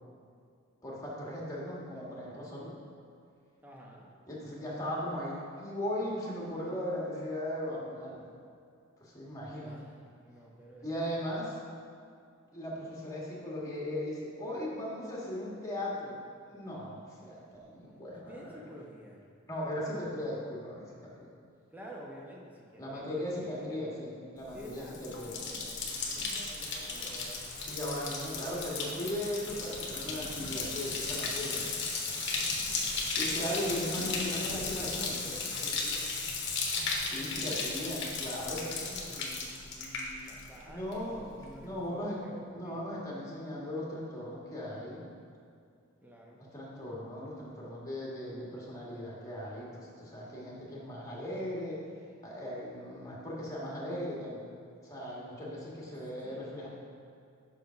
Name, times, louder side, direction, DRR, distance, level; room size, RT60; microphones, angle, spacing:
voice 1, 0.8-2.8 4.3-8.3 9.0-9.7 10.8-11.6 12.5-16.2 16.5-18.3 19.5-21.2 22.8-25.3 27.7-31.8 33.2-35.2 37.0-38.6 40.6-41.3 41.6-42.2 42.5-45.1 46.5-51.8 52.2-54.4 54.8-56.7, left 1 dB, 15° left, -5 dB, 1.5 m, -38 dB
voice 2, 3.6-4.1 9.6-9.9 10.2-10.9 11.1-11.3 18.1-19.2 21.7-23.2 23.6-23.9 24.4-27.4 32.8-36.1 37.4-38.0 38.3-39.5 39.8-42.9 46.0-46.4 56.2-56.5, equal, 10° right, -3 dB, 0.9 m, -49 dB
Bathtub (filling or washing), 24.5-40.6 40.9-41.4, left 4 dB, 60° left, 1.0 m, -35 dB
sound 1, 25.9-35.0, right 4 dB, 40° right, 0.3 m, -50 dB
5.2 x 5.1 x 5.7 m, 2.4 s
head